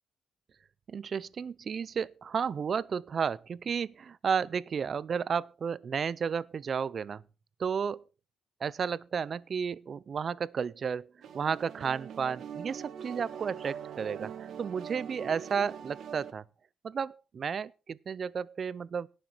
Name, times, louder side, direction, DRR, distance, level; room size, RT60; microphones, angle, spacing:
voice 1, 0.9-7.2 7.6-8.0 8.6-14.3 14.6-16.4 16.8-19.1, right 6 dB, 50° right, 0.5 m, -32 dB
sound 1, 11.2-16.3, right 8 dB, 70° right, 1.6 m, -42 dB
18.0 x 6.6 x 4.5 m
cardioid pair, 90°, 0 cm